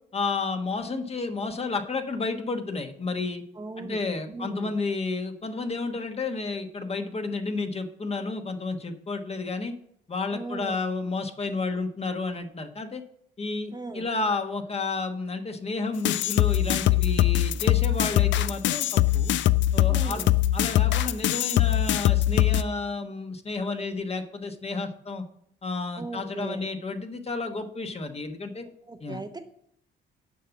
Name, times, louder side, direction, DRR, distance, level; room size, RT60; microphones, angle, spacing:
voice 1, 0.1-3.4 3.8-9.7 10.1-13.0 13.4-19.3 19.7-20.2 20.5-25.2 25.6-28.6 29.0-29.2, left 3 dB, 30° left, 6 dB, 1.2 m, -31 dB
voice 2, 3.6-4.0 4.3-4.8 10.3-10.8 13.7-14.1 19.9-20.3 26.0-26.7 28.9-29.4, right 3 dB, 20° right, 7 dB, 0.8 m, -38 dB
sound 1, 16.1-22.6, left 13 dB, 70° left, 0.4 m, -22 dB
7.6 x 5.6 x 6.9 m, 0.70 s
cardioid pair, 90°, 20 cm